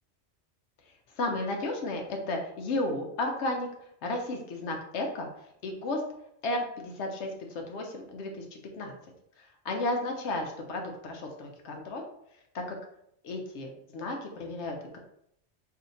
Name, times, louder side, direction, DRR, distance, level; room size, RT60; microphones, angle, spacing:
voice 1, 1.1-3.7 4.0-5.3 5.6-6.0 6.4-8.9 9.4-12.0 12.5-12.8 13.2-15.0, left 2 dB, 80° left, 3 dB, 0.9 m, -33 dB
2.7 x 2.5 x 3.9 m, 0.74 s
omnidirectional pair, 1.2 m